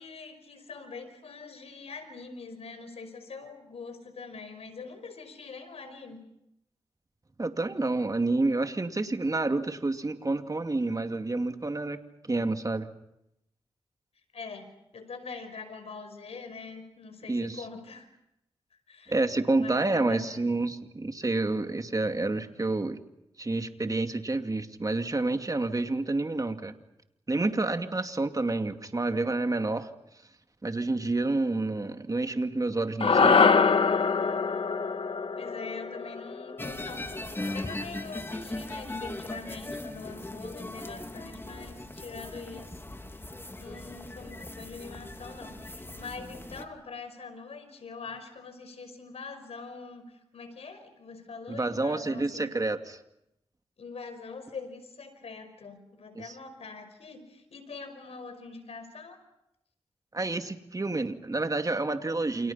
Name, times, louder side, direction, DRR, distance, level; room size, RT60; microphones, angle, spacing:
voice 1, 0.0-6.2 14.3-18.1 18.9-19.2 19.5-20.5 35.3-42.8 43.1-43.3 43.6-52.5 53.8-59.2, left 4 dB, 80° left, 8 dB, 5.4 m, -43 dB
voice 2, 7.4-12.0 12.2-12.9 17.3-17.6 19.1-23.0 23.4-26.7 27.3-29.9 30.6-33.4 51.5-53.0 56.2-56.3 60.1-62.5, right 2 dB, 35° right, 7 dB, 2.5 m, -29 dB
sound 1, 33.0-37.5, left 5 dB, 65° left, 1.5 m, -24 dB
sound 2, 36.6-46.6, left 1 dB, 20° left, 2.9 m, -39 dB
29.5 x 28.0 x 5.8 m, 0.82 s
cardioid pair, 50°, 10 cm